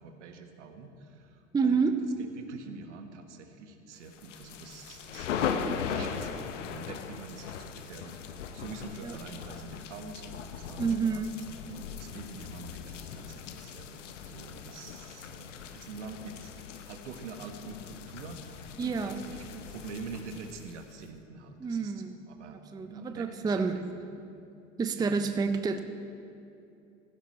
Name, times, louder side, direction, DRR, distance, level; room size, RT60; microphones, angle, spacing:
voice 1, 0.0-1.8 2.2-5.3 5.8-11.3 11.6-23.8 25.0-25.2, right 4 dB, 70° right, 5 dB, 1.5 m, -46 dB
voice 2, 1.5-2.0 5.6-5.8 9.0-9.2 10.8-11.3 18.8-19.2 21.6-22.2 22.7-23.8 24.8-25.8, right 5 dB, 10° right, 8 dB, 0.6 m, -29 dB
sound 1, 4.1-21.1, left 7 dB, 75° left, 0.9 m, -39 dB
16.0 x 15.5 x 3.1 m, 2.7 s
hypercardioid pair, 85°, 37 cm